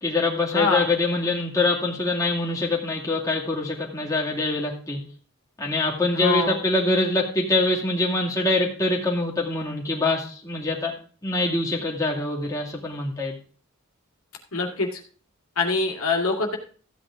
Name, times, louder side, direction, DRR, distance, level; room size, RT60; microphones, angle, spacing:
voice 1, 0.0-5.0 5.6-10.9 11.2-13.4, left 2 dB, 15° left, -3 dB, 2.2 m, -24 dB
voice 2, 0.5-0.9 6.1-6.6 14.5-14.9 15.6-16.6, left 3 dB, 80° left, 0 dB, 2.2 m, -24 dB
14.5 x 8.8 x 3.7 m, 0.42 s
head